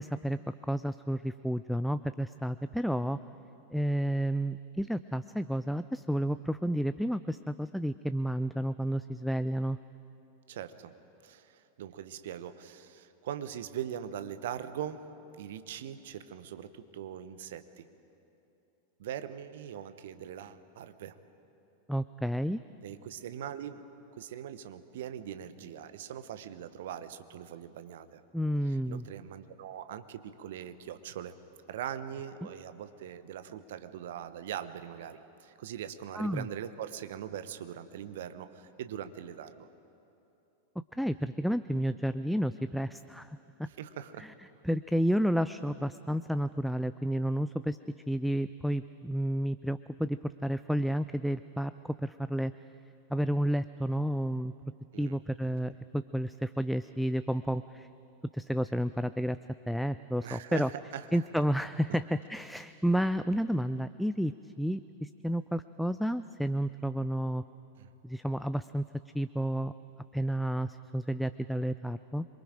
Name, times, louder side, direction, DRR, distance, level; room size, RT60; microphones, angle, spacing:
voice 1, 0.0-3.2 3.7-9.8 21.9-22.6 28.3-29.1 36.1-36.5 40.9-43.7 44.2-44.3 44.6-47.8 48.1-52.5 53.1-54.5 55.0-57.9 58.3-59.4 59.7-60.7 61.1-67.4 68.0-68.8 69.1-69.7 70.1-72.3, equal, ahead, 12 dB, 0.4 m, -31 dB
voice 2, 10.5-10.9 11.2-15.1 15.4-17.9 19.0-21.1 22.8-23.8 24.2-28.2 28.7-31.4 31.7-39.7 43.8-44.3 54.9-55.2 60.2-61.2 67.8-67.9, right 10 dB, 55° right, 11 dB, 1.0 m, -41 dB
26.5 x 23.0 x 5.0 m, 2.8 s
figure-of-eight pair, 90°, 0 cm